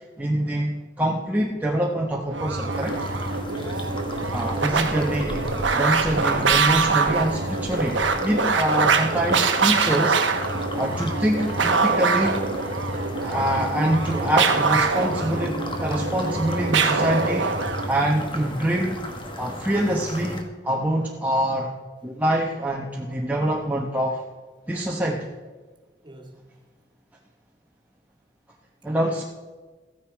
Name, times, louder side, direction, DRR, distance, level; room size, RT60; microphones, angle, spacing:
voice 1, 0.2-2.9 4.3-10.2 10.7-12.4 13.2-17.5 17.9-19.0 19.4-21.7 22.0-24.2 24.7-25.3 28.8-29.2, right 1 dB, 10° right, 1.0 m, -25 dB
sound 1, 2.3-18.0, right 4 dB, 85° right, 1.0 m, -24 dB
sound 2, 2.7-20.4, left 1 dB, 30° left, 1.3 m, -36 dB
voice 2, 3.5-4.1 4.5-5.2 26.0-26.6, right 1 dB, 25° right, 1.9 m, -43 dB
14.0 x 9.6 x 4.7 m
head